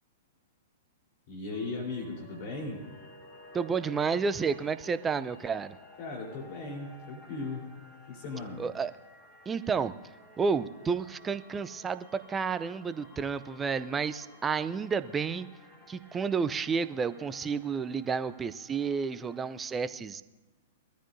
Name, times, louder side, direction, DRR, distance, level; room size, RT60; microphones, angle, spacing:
voice 1, 1.3-2.8 6.0-7.6 8.1-8.6, left 3 dB, 45° left, -2 dB, 4.0 m, -37 dB
sound 1, 1.5-19.5, left 2 dB, 10° left, 5.2 m, -54 dB
voice 2, 3.5-5.8 8.6-8.9 9.5-9.9 10.4-15.5 15.9-20.2, right 5 dB, 15° right, 13 dB, 0.6 m, -31 dB
22.5 x 14.0 x 2.7 m, 1.2 s
figure-of-eight pair, 110°, 0 cm